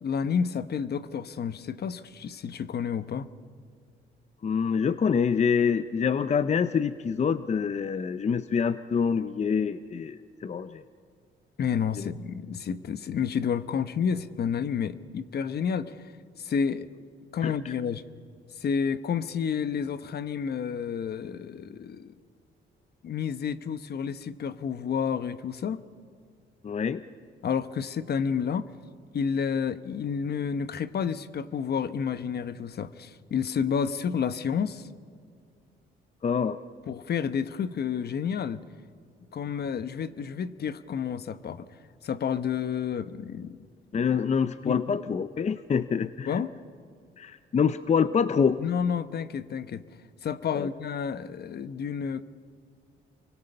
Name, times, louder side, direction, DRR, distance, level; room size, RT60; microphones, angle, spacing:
voice 1, 0.0-3.3 11.6-16.1 16.4-16.9 17.3-18.0 18.5-22.1 23.0-25.8 27.4-28.7 29.1-34.9 36.9-38.6 39.3-41.7 42.0-43.7 44.6-45.2 46.3-46.6 48.6-49.8 50.2-52.2, left 7 dB, 55° left, 13 dB, 1.0 m, -30 dB
voice 2, 4.4-10.8 12.0-12.1 17.4-17.5 26.6-27.0 36.2-36.6 43.9-46.4 47.2-48.6 50.5-50.7, left 6 dB, 35° left, 12 dB, 0.7 m, -26 dB
28.5 x 24.0 x 5.5 m, 2.2 s
cardioid pair, 90°, 20 cm